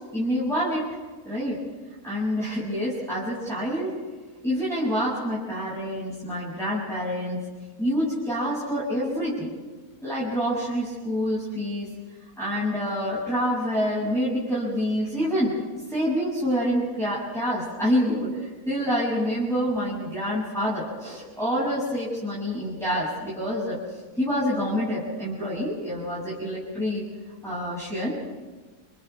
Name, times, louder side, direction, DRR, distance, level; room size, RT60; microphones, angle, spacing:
voice 1, 0.1-0.9 1.2-1.6 2.0-3.9 4.4-7.4 7.8-9.5 10.0-11.9 12.4-15.5 15.9-18.3 18.7-23.8 24.2-27.0 27.4-28.2, equal, ahead, -10 dB, 7.0 m, -27 dB
29.5 x 29.5 x 3.6 m, 1.4 s
omnidirectional pair, 1.7 m